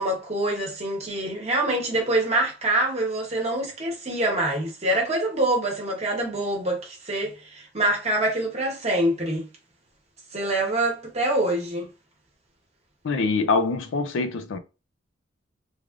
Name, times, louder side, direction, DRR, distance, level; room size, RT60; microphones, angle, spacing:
voice 1, 0.0-9.4 10.3-11.9, right 1 dB, 35° right, 1.1 m, -25 dB
voice 2, 13.0-14.6, left 3 dB, 85° left, 0.4 m, -24 dB
3.3 x 2.4 x 2.4 m
head